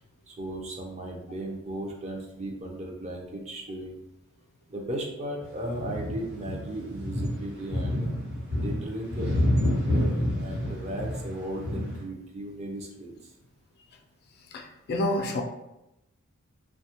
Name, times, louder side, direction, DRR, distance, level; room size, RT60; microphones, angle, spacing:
voice 1, 0.3-4.0 4.7-8.1 8.6-9.3 9.8-13.3, right 1 dB, 30° right, 0 dB, 0.4 m, -36 dB
sound 1, 5.4-12.0, left 1 dB, 50° right, 1.0 m, -28 dB
voice 2, 14.5-15.4, left 1 dB, 45° left, 3 dB, 0.3 m, -28 dB
2.7 x 2.2 x 2.8 m, 0.91 s
head